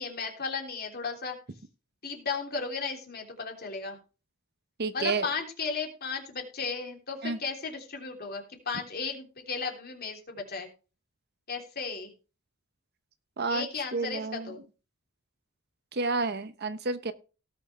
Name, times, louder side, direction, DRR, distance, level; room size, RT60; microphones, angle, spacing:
voice 1, 0.0-1.4 2.0-4.0 4.9-10.7 11.5-12.1 13.4-14.6, left 5 dB, 45° left, 3 dB, 3.3 m, -35 dB
voice 2, 4.8-5.3 7.2-7.4 13.4-14.5 15.9-17.1, right 3 dB, 50° right, 12 dB, 0.9 m, -30 dB
18.0 x 6.2 x 3.3 m, 0.33 s
head